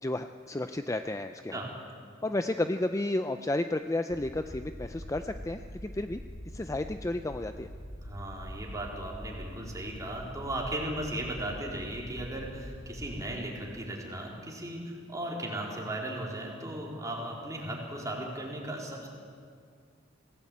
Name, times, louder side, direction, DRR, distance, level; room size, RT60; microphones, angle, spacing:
voice 1, 0.0-1.6 2.2-6.2 6.5-7.7, left 2 dB, 15° left, 8 dB, 0.5 m, -32 dB
sound 1, 4.1-13.4, equal, 65° left, 2.6 m, -44 dB
voice 2, 8.0-19.1, right 1 dB, 15° right, -2 dB, 4.0 m, -36 dB
24.5 x 17.0 x 8.6 m, 2.2 s
head